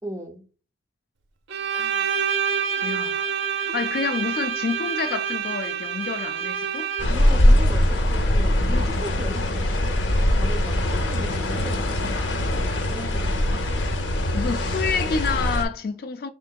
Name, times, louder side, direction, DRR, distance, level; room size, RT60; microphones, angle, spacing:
voice 1, 0.0-0.5 7.1-11.9 12.9-13.7, right 1 dB, 15° right, 0.5 m, -37 dB
Bowed string instrument, 1.5-7.3, right 7 dB, 80° right, 0.6 m, -27 dB
voice 2, 1.7-2.3 2.8-6.9 13.5-13.6 14.3-16.3, left 5 dB, 50° left, 0.3 m, -29 dB
sound 1, 7.0-15.6, left 1 dB, 75° left, 0.7 m, -22 dB
5.0 x 3.7 x 2.2 m
head